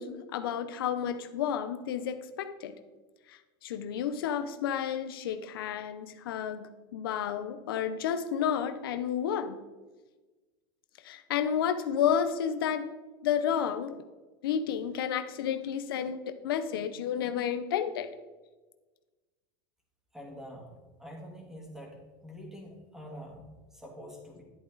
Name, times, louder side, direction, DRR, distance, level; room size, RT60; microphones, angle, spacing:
voice 1, 0.0-2.8 3.3-9.6 11.0-12.9 13.2-14.0 14.4-18.1, left 8 dB, 90° left, 10 dB, 0.8 m, -31 dB
voice 2, 20.1-22.0 22.2-24.4, equal, 5° right, 0 dB, 2.4 m, -46 dB
11.0 x 7.9 x 3.9 m, 1.2 s
supercardioid pair, 125°, 12 cm